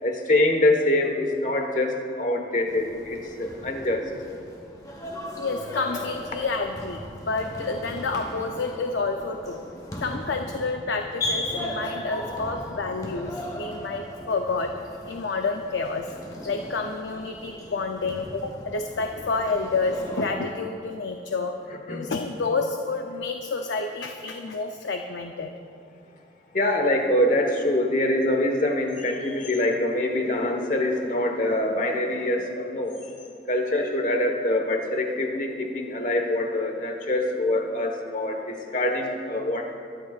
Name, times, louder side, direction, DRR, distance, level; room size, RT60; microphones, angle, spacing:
voice 1, 0.0-4.1 21.9-22.1 26.5-33.0 33.5-39.7, left 1 dB, 45° left, 3 dB, 1.3 m, -24 dB
sound 1, 2.7-20.3, left 1 dB, 20° left, 1.2 m, -37 dB
voice 2, 5.4-9.6 10.0-14.7 15.1-16.1 16.4-21.6 21.9-25.5, left 3 dB, 85° left, 4 dB, 0.6 m, -29 dB
22.0 x 11.0 x 2.5 m, 2.4 s
head